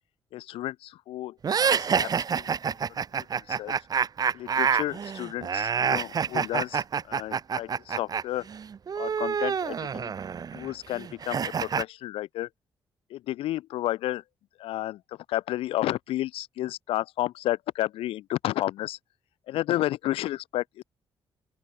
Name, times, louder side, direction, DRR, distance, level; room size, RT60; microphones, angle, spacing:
voice 1, 0.3-3.8 4.3-8.5 9.0-10.1 10.5-12.5 13.1-14.2 14.6-19.0 19.5-20.8, left 15 dB, 85° left, 0.4 m, -32 dB
sound 1, 1.4-8.2 8.5-11.8, right 6 dB, 45° right, 0.7 m, -27 dB
open air
cardioid pair, 85°, 9 cm